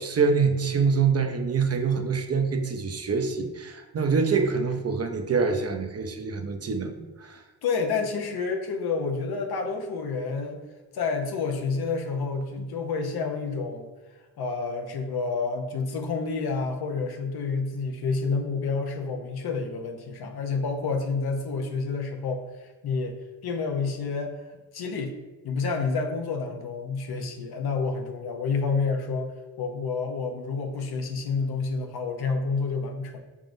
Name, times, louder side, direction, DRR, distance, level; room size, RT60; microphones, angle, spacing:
voice 1, 0.0-7.4, right 5 dB, 40° right, 6 dB, 0.5 m, -25 dB
voice 2, 7.6-10.6 10.9-13.9 14.4-24.4 24.7-25.1 25.4-33.2, left 4 dB, 80° left, 3 dB, 0.7 m, -29 dB
4.9 x 3.6 x 2.6 m, 1.2 s
cardioid pair, 70°, 37 cm